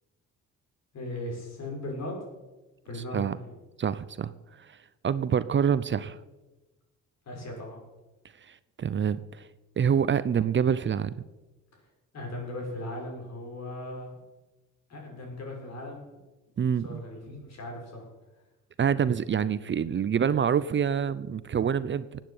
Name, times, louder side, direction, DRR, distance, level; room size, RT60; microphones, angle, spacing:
voice 1, 0.9-2.2 2.8-3.5 7.2-7.8 12.1-14.2 14.9-16.2 16.8-18.1, left 1 dB, 60° left, 0 dB, 6.5 m, -38 dB
voice 2, 3.8-4.3 5.0-6.2 8.5-9.5 9.8-11.1 16.6-17.0 18.8-22.1, right 7 dB, 40° right, 15 dB, 0.7 m, -26 dB
16.0 x 9.2 x 8.5 m, 1.1 s
cardioid pair, 90°, 30 cm